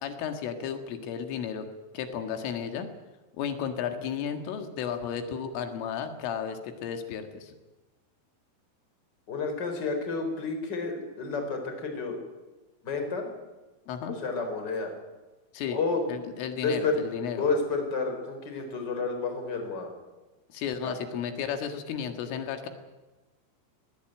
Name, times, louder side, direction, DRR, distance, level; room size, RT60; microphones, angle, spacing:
voice 1, 0.0-1.7 1.9-2.9 3.4-7.6 13.9-14.2 15.5-15.8 16.1-17.5 20.5-22.7, left 7 dB, 80° left, 6 dB, 4.4 m, -33 dB
voice 2, 9.3-12.2 12.8-13.3 14.2-14.9 15.7-16.3 16.6-17.0 17.4-19.9 20.8-21.0, left 4 dB, 25° left, 5 dB, 4.2 m, -30 dB
22.0 x 19.5 x 9.0 m, 1.2 s
omnidirectional pair, 5.7 m